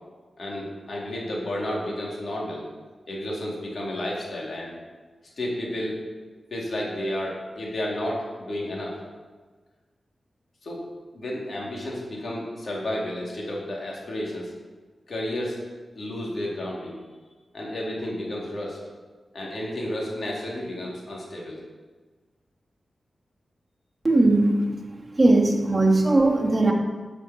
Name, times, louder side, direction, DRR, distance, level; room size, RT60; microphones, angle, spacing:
voice 1, 0.4-2.6 3.1-4.7 5.4-5.9 6.5-9.0 10.6-10.8 11.1-14.5 15.1-15.6 15.9-17.0 17.5-18.8 19.3-21.6, left 1 dB, 65° left, -3 dB, 3.6 m, -31 dB
voice 2, 24.0-24.5 25.1-26.7, right 2 dB, 25° right, -3 dB, 2.9 m, -19 dB
13.0 x 8.3 x 4.7 m, 1.4 s
cardioid pair, 55°, 0 cm